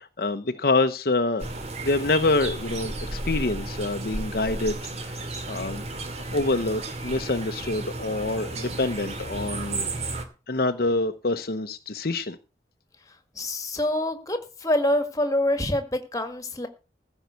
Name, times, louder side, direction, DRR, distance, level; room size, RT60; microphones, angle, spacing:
voice 1, 0.0-1.5 1.8-4.8 5.0-5.2 5.5-5.8 6.3-9.9 10.5-12.4, left 2 dB, 60° left, 0.8 m, -26 dB
sound 1, 1.4-10.2, right 2 dB, 40° right, 2.3 m, -33 dB
voice 2, 13.4-16.7, left 1 dB, 20° left, 1.8 m, -26 dB
15.0 x 5.6 x 8.2 m
head